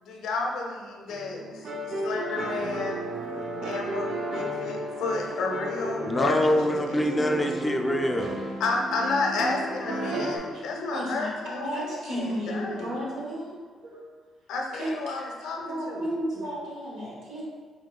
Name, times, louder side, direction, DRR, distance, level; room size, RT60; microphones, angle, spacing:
voice 1, 0.0-3.1 3.6-6.4 6.6-7.4 8.6-13.0 14.5-16.1, left 3 dB, 80° left, 1 dB, 0.6 m, -31 dB
sound 1, 1.1-10.4, right 1 dB, 60° right, 0.5 m, -33 dB
voice 2, 6.1-8.4, left 1 dB, 15° left, 3 dB, 0.4 m, -25 dB
voice 3, 10.5-13.5 13.8-14.0 14.7-14.9 15.2-17.4, equal, 80° right, -5 dB, 1.2 m, -34 dB
5.2 x 3.0 x 2.3 m, 1.5 s
cardioid pair, 90°, 0 cm